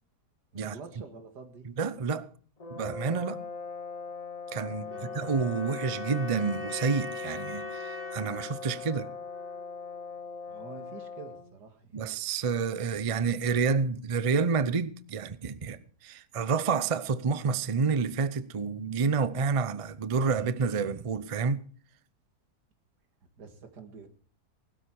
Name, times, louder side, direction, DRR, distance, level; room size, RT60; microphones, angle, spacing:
voice 1, 0.5-1.6 4.6-5.2 10.5-12.1 23.4-24.1, right 5 dB, 80° right, 2.5 m, -47 dB
voice 2, 1.8-2.3 2.7-3.4 4.5-9.1 11.9-15.8 16.0-21.6, right 5 dB, 55° right, 0.3 m, -29 dB
sound 1, 2.6-11.5, left 5 dB, 35° left, 0.7 m, -40 dB
sound 2, 4.9-9.9, left 1 dB, 10° right, 1.4 m, -43 dB
19.5 x 13.0 x 4.7 m
omnidirectional pair, 1.8 m